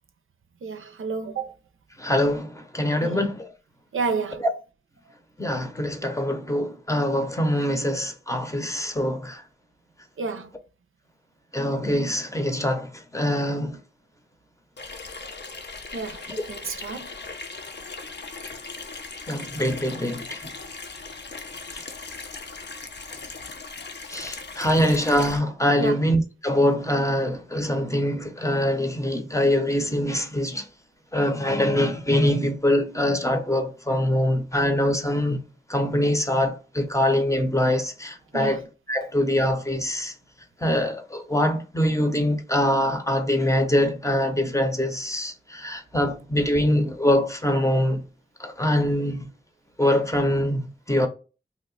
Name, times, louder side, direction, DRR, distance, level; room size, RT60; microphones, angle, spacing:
voice 1, 0.6-1.5 3.0-3.2 3.9-4.5 10.2-10.5 15.9-17.1 25.8-26.0 38.3-38.6, right 4 dB, 80° right, 0.5 m, -30 dB
voice 2, 2.0-3.5 5.4-9.4 11.5-13.8 19.3-20.5 21.7-21.8 24.1-30.7 31.1-35.4 35.7-40.1 40.6-48.0 48.4-49.3 49.8-51.1, left 1 dB, 15° left, 0.7 m, -24 dB
Water tap faucet / Sink (filling or washing), 14.8-25.4, left 4 dB, 55° left, 0.6 m, -38 dB
2.8 x 2.1 x 3.9 m
wide cardioid pair, 50°, 21 cm